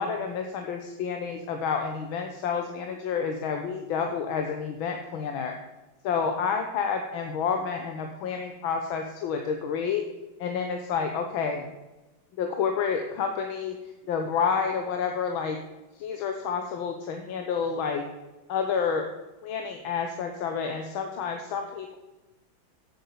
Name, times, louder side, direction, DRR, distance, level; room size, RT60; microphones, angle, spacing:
voice 1, 0.0-5.6 6.0-10.0 10.4-11.6 12.4-13.8 14.1-15.6 16.0-18.0 18.5-19.1 19.4-22.0, left 6 dB, 90° left, 4 dB, 1.7 m, -29 dB
8.2 x 7.7 x 7.2 m, 1.1 s
omnidirectional pair, 2.1 m